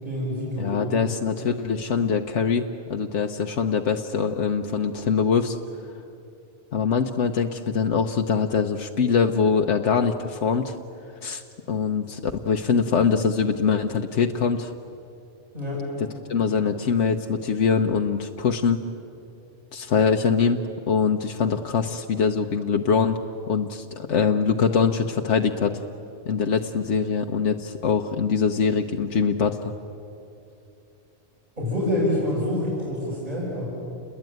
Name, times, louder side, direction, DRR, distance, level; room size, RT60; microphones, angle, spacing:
voice 1, 0.0-0.8 15.5-15.8 31.6-33.7, left 1 dB, 35° right, -6 dB, 7.4 m, -26 dB
voice 2, 0.6-2.6 2.9-5.6 6.7-10.7 11.2-11.4 11.7-14.7 16.3-18.8 19.7-20.6 20.9-23.2 23.5-25.8 26.3-29.7, left 6 dB, 90° left, 3 dB, 1.3 m, -23 dB
29.5 x 21.5 x 9.3 m, 2.7 s
omnidirectional pair, 1.2 m